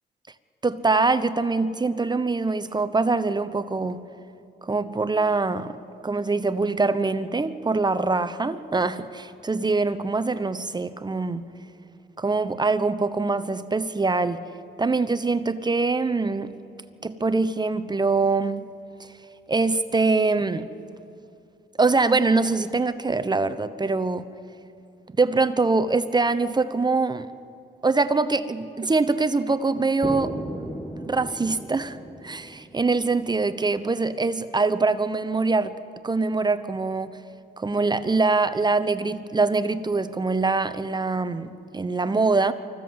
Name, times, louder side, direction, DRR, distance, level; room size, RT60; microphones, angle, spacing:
voice 1, 0.6-4.0 4.6-5.8 6.0-11.5 12.2-14.4 14.8-16.5 17.0-18.6 19.5-20.7 21.8-24.3 25.2-27.3 27.8-30.4 31.0-32.0 32.2-35.8 36.0-37.2 37.6-42.5, right 3 dB, 20° right, 11 dB, 0.8 m, -23 dB
sound 1, 30.0-33.9, equal, 5° left, 1.6 m, -36 dB
25.0 x 15.5 x 7.9 m, 2.5 s
cardioid pair, 90°, 20 cm